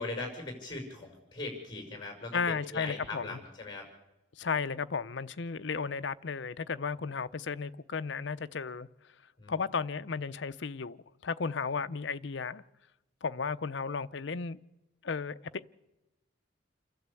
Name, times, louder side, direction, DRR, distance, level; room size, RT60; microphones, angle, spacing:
voice 1, 0.0-3.9 9.4-9.6, left 2 dB, 25° left, 5.7 m, -40 dB
voice 2, 2.3-3.4 4.4-8.9 9.5-12.6 13.2-14.6 15.0-15.4, left 5 dB, 60° left, 0.6 m, -34 dB
28.5 x 12.0 x 8.3 m
head